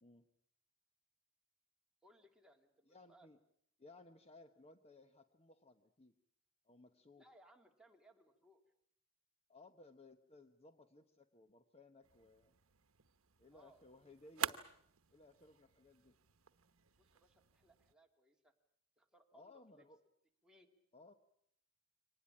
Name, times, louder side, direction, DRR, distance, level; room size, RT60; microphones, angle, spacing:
voice 1, 2.0-3.3 7.2-8.6 13.5-13.8 17.0-18.5 19.0-19.9 20.4-20.7, right 1 dB, 5° right, 2 dB, 2.5 m, -67 dB
voice 2, 2.9-3.4 3.8-6.1 6.6-7.3 9.5-12.6 13.4-14.6 15.1-16.1 19.3-20.0 20.9-21.1, left 2 dB, 30° left, 9 dB, 1.0 m, -61 dB
sound 1, 12.0-18.0, right 9 dB, 75° right, 1.0 m, -48 dB
24.5 x 19.0 x 8.7 m, 0.69 s
head